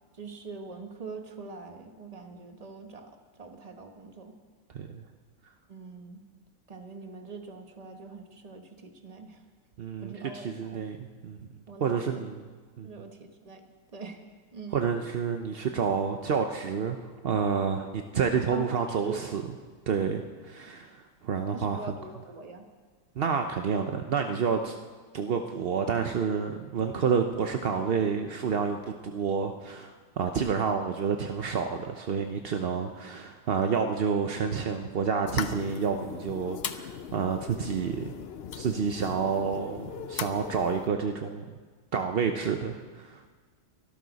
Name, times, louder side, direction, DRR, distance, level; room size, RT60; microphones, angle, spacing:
voice 1, 0.1-4.4 5.7-6.2 6.7-9.4 10.0-10.8 11.7-12.3 12.8-14.2 14.5-14.9 18.5-19.3 21.5-22.6, right 4 dB, 25° right, 5 dB, 1.0 m, -43 dB
voice 2, 9.8-11.4 11.8-12.4 12.8-12.9 14.7-19.4 19.9-21.8 23.2-24.7 25.1-38.2 38.6-41.6 41.9-43.3, right 6 dB, 60° right, 5 dB, 0.6 m, -29 dB
sound 1, 35.3-40.9, left 8 dB, 75° left, 0.5 m, -38 dB
23.5 x 12.5 x 4.1 m, 1.5 s
omnidirectional pair, 1.9 m